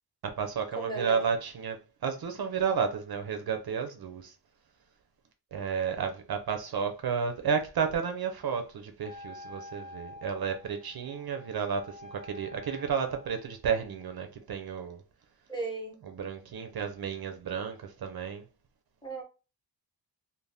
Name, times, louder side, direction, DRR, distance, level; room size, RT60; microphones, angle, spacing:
voice 1, 0.2-4.3 5.5-15.0 16.0-18.4, right 6 dB, 55° right, 0.5 m, -32 dB
voice 2, 0.8-1.2 15.5-16.0 19.0-19.2, right 3 dB, 10° left, 0.7 m, -35 dB
Wind instrument woodwind instrument, 9.0-13.5, left 2 dB, 45° left, 0.6 m, -48 dB
2.6 x 2.1 x 3.2 m
wide cardioid pair, 140°, 44 cm